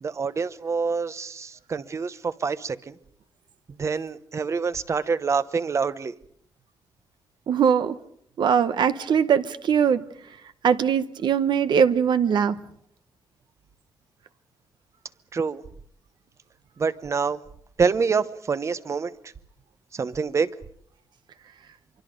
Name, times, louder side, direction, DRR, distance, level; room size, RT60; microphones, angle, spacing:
voice 1, 0.0-2.9 3.8-6.1 15.3-15.6 16.8-17.4 17.8-19.1 19.9-20.5, right 5 dB, 35° right, 0.9 m, -26 dB
voice 2, 7.5-7.9 8.4-10.0 10.6-12.6, right 7 dB, 60° right, 0.9 m, -21 dB
25.5 x 24.5 x 5.2 m
wide cardioid pair, 145°, 8 cm